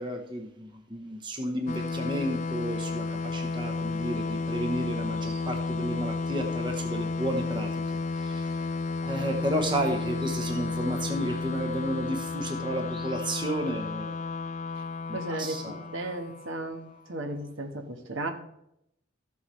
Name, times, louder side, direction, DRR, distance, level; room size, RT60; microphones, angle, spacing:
voice 1, 0.0-7.7 8.1-8.6 9.0-14.1 15.1-15.9, right 1 dB, 25° right, 4 dB, 0.8 m, -32 dB
sound 1, 1.7-17.1, left 3 dB, 35° left, 0.3 m, -32 dB
voice 2, 15.1-15.6 15.9-16.8 17.1-18.3, right 2 dB, 70° right, 5 dB, 1.3 m, -34 dB
14.0 x 7.1 x 3.2 m, 0.77 s
head